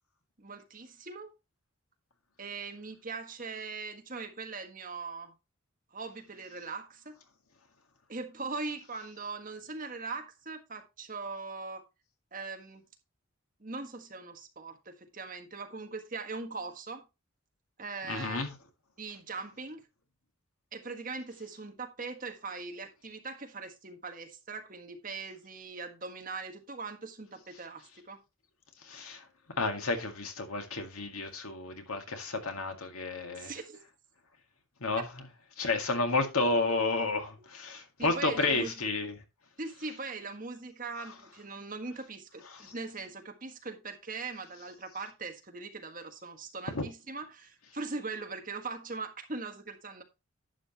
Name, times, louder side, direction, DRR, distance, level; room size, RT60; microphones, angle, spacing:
voice 1, 0.4-1.3 2.4-5.4 5.9-7.1 8.1-11.8 12.3-12.8 13.6-17.0 17.8-18.4 19.0-19.8 20.7-28.2 33.3-33.8 38.0-38.7 39.6-50.0, right 4 dB, 40° right, 1.6 m, -40 dB
voice 2, 18.1-18.5 28.8-29.3 29.6-33.5 34.8-35.2 35.6-39.2 42.5-42.7 46.7-46.9, left 3 dB, 85° left, 2.0 m, -31 dB
11.0 x 7.8 x 2.9 m
head